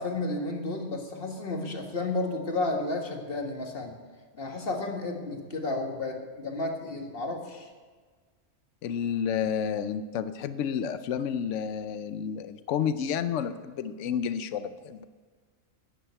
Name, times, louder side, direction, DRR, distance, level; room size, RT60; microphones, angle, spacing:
voice 1, 0.0-3.9 4.3-7.7, left 2 dB, 50° left, 3 dB, 1.8 m, -32 dB
voice 2, 8.8-15.0, left 8 dB, 85° left, 12 dB, 1.0 m, -30 dB
11.0 x 9.4 x 8.2 m, 1.5 s
omnidirectional pair, 1.2 m